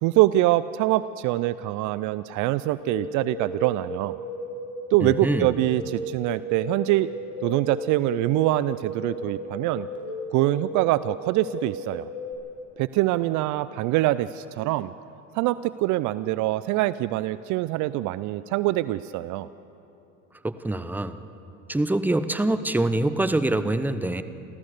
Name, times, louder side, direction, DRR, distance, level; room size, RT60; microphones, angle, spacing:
voice 1, 0.0-4.2 4.9-7.1 7.4-9.9 10.3-12.1 12.8-14.9 15.3-19.5, right 16 dB, 50° right, 16 dB, 0.5 m, -24 dB
sound 1, 2.8-12.3, left 1 dB, 45° left, 6.5 m, -35 dB
voice 2, 5.0-5.6 20.4-21.2 21.7-24.2, right 2 dB, 5° right, 11 dB, 0.9 m, -25 dB
28.0 x 14.0 x 6.7 m, 2.9 s
hypercardioid pair, 80°, 39 cm